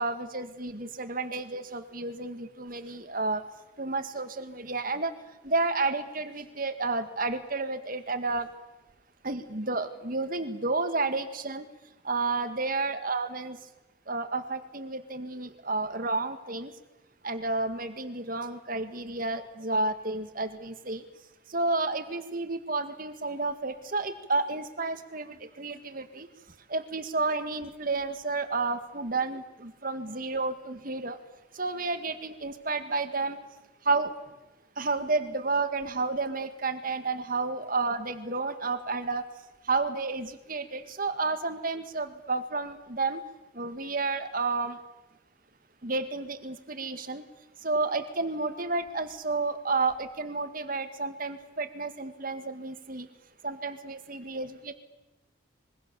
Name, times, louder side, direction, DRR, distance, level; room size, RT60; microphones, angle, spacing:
voice 1, 0.0-3.4 3.8-5.1 5.4-8.5 9.2-11.7 12.0-13.6 14.1-16.7 17.2-21.1 21.5-26.3 26.7-31.2 31.5-33.4 33.8-34.1 34.8-39.2 39.6-43.2 43.5-44.8 45.8-47.2 47.6-53.1 53.4-54.7, right 3 dB, 45° right, 9 dB, 1.9 m, -31 dB
25.5 x 23.5 x 7.0 m, 1.0 s
head